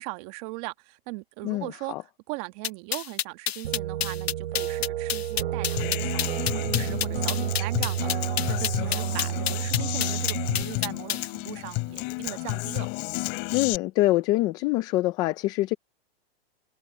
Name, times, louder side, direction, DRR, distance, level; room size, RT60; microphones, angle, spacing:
voice 1, 0.0-1.9 2.3-12.9, right 24 dB, 35° right, 1.6 m, -39 dB
voice 2, 1.4-2.0 13.5-15.7, left 17 dB, 15° left, 0.3 m, -25 dB
sound 1, 2.6-11.3, left 10 dB, 85° left, 1.3 m, -29 dB
sound 2, 3.6-10.6, right 11 dB, 70° right, 3.0 m, -30 dB
Human voice / Acoustic guitar, 5.8-13.8, left 28 dB, 35° left, 2.7 m, -31 dB
hypercardioid pair, 145°, 30 cm